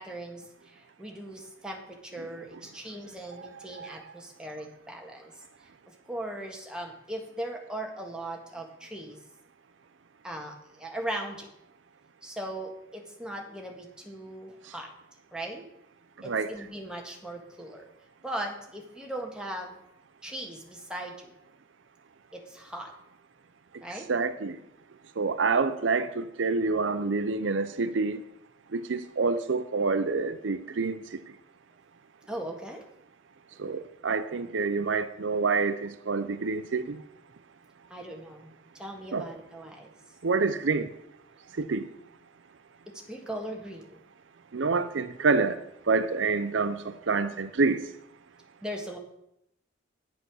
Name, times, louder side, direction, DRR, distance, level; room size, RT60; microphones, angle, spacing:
voice 1, 0.0-5.3 5.9-9.2 10.2-11.5 12.2-14.9 15.3-15.7 16.2-17.9 18.2-19.8 20.2-21.3 22.3-22.9 23.8-24.1 32.2-32.8 37.9-39.9 43.1-44.0 48.6-49.0, right 1 dB, 5° right, 0 dB, 1.7 m, -39 dB
voice 2, 24.1-24.6 25.2-28.2 28.7-31.2 33.6-37.0 39.1-39.3 40.2-40.9 41.6-41.9 44.5-47.8, right 4 dB, 75° right, 12 dB, 0.6 m, -27 dB
9.5 x 7.9 x 6.2 m, 0.79 s
head